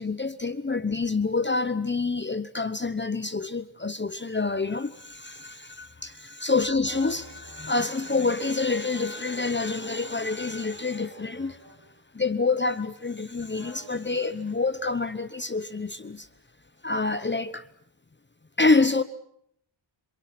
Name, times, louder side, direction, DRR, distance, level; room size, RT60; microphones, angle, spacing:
voice 1, 0.0-11.6 12.1-16.3 16.8-17.6 18.6-19.0, left 3 dB, 25° left, 1.0 m, -27 dB
sound 1, 6.8-12.0 12.4-13.1 13.5-14.3, right 2 dB, 55° right, 5.4 m, -51 dB
27.5 x 27.0 x 6.0 m
wide cardioid pair, 170°, 46 cm